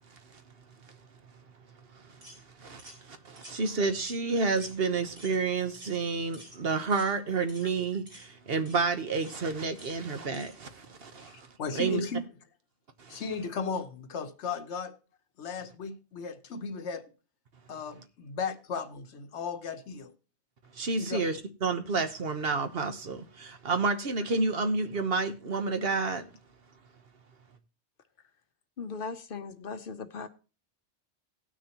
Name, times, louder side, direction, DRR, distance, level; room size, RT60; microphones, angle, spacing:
voice 1, 1.9-2.3 2.6-11.5 11.7-12.0 13.0-13.2 20.7-26.3, right 4 dB, 60° right, 1.2 m, -30 dB
sound 1, 2.2-2.4 2.8-3.0 3.4-3.6 4.0-4.3 4.6-4.8 5.2-5.4 5.7-6.0 6.3-6.6 6.9-7.2 7.5-7.7 8.1-8.3 8.7-8.8 9.2-9.4 9.8-10.0 10.3-10.6, equal, 90° right, 4.1 m, -50 dB
voice 2, 11.6-12.3 13.1-15.0 15.4-17.1 17.7-20.1 20.9-21.4, left 5 dB, 75° left, 1.2 m, -35 dB
voice 3, 28.8-30.3, left 4 dB, 55° left, 0.9 m, -38 dB
18.0 x 6.2 x 2.9 m
omnidirectional pair, 1.2 m